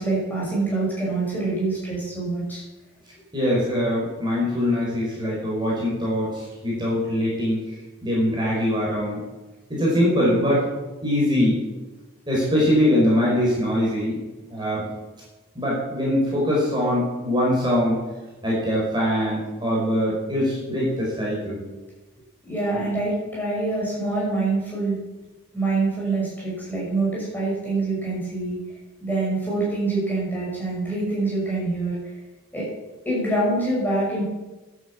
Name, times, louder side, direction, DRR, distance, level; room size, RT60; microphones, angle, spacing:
voice 1, 0.0-2.6 22.5-24.9 25.5-28.6 29.0-31.9 32.5-32.7 33.1-34.2, right 2 dB, 10° left, -7 dB, 5.9 m, -25 dB
voice 2, 3.3-7.6 8.0-9.2 9.7-10.7 11.0-11.6 12.3-14.2 14.5-14.8 15.5-18.0 18.4-21.6, left 1 dB, 20° right, -6 dB, 5.1 m, -22 dB
11.0 x 9.6 x 7.3 m, 1.1 s
head